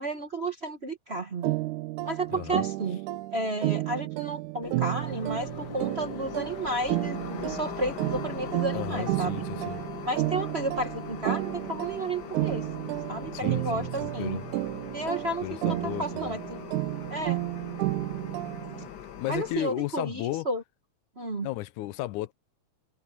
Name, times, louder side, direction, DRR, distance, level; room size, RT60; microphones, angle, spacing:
voice 1, 0.0-1.5 2.0-3.0 3.3-9.4 10.1-12.7 13.1-14.4 14.9-16.6 17.1-17.4 19.3-20.6 21.2-21.5, right 2 dB, 40° right, 0.8 m, -32 dB
sound 1, 1.4-18.9, right 18 dB, 85° right, 2.2 m, -32 dB
voice 2, 2.3-2.6 8.7-9.8 13.3-14.4 15.4-16.4 19.2-20.5 21.4-22.3, left 15 dB, 90° left, 2.3 m, -34 dB
sound 2, 4.6-19.6, left 9 dB, 60° left, 1.1 m, -41 dB
omnidirectional pair, 3.4 m